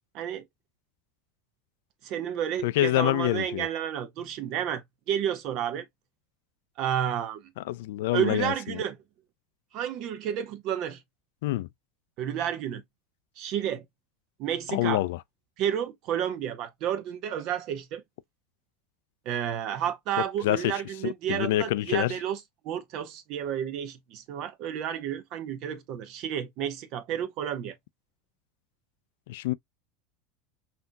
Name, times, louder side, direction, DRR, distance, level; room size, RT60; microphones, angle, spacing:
voice 1, 0.1-0.5 2.0-5.9 6.8-7.5 8.1-9.0 9.7-11.0 12.2-12.8 13.4-13.8 14.4-15.0 15.6-18.0 19.3-22.4 22.6-27.7, right 10 dB, 45° right, 0.9 m, -31 dB
voice 2, 2.6-3.7 7.7-8.8 11.4-11.7 14.7-15.2 20.4-20.7 21.0-22.2 29.3-29.5, left 15 dB, 75° left, 0.3 m, -26 dB
5.7 x 2.7 x 2.2 m
supercardioid pair, 155°, 0 cm